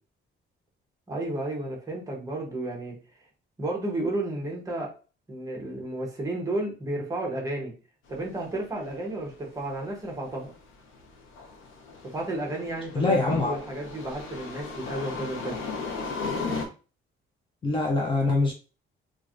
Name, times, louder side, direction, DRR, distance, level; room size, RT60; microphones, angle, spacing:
voice 1, 1.1-3.0 3.6-4.9 5.3-7.7 8.1-10.5 12.0-15.6, right 1 dB, 15° right, -1 dB, 0.8 m, -32 dB
sound 1, 8.1-16.7, left 4 dB, 70° left, 0.7 m, -36 dB
voice 2, 12.9-13.6 17.6-18.5, left 3 dB, 25° left, -1 dB, 0.4 m, -24 dB
3.1 x 2.4 x 2.5 m, 0.34 s
cardioid pair, 175°, 21 cm